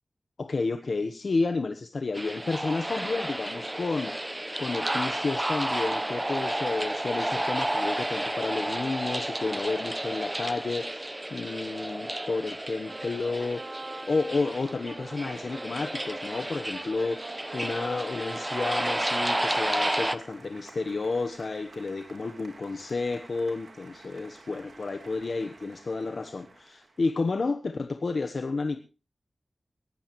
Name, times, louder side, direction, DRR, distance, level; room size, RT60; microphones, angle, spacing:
voice 1, 0.4-4.1 4.6-28.8, left 3 dB, 70° left, 7 dB, 1.1 m, -31 dB
sound 1, 2.1-20.2, right 1 dB, 20° right, 1.0 m, -32 dB
sound 2, 12.9-27.0, right 2 dB, 80° right, 3.4 m, -46 dB
19.0 x 15.5 x 3.1 m, 0.33 s
wide cardioid pair, 80°, 0 cm